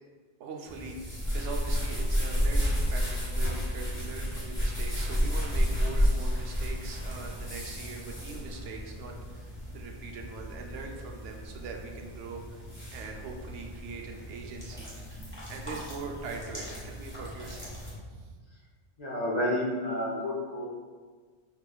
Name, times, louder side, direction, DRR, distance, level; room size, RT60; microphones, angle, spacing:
voice 1, 0.4-12.6 12.9-15.2 15.5-17.7 18.1-18.4, right 4 dB, 85° right, 1 dB, 0.9 m, -42 dB
sound 1, 0.7-17.9, equal, 10° left, 1.2 m, -32 dB
voice 2, 19.0-20.6, left 1 dB, 45° left, -6 dB, 0.5 m, -30 dB
4.8 x 2.9 x 2.2 m, 1.5 s
omnidirectional pair, 1.2 m